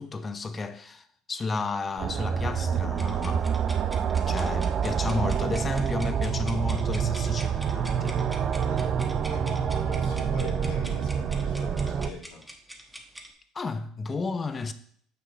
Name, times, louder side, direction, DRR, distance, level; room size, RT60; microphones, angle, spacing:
voice 1, 0.0-3.5 4.3-8.2 13.5-14.7, left 4 dB, 30° left, 0.7 m, -32 dB
sound 1, 2.0-12.1, right 7 dB, 45° right, 0.6 m, -27 dB
sound 2, 2.9-13.3, equal, 5° right, 1.3 m, -45 dB
voice 2, 9.2-12.4, left 2 dB, 80° left, 2.1 m, -43 dB
6.1 x 6.0 x 4.5 m
hypercardioid pair, 75°, 0 cm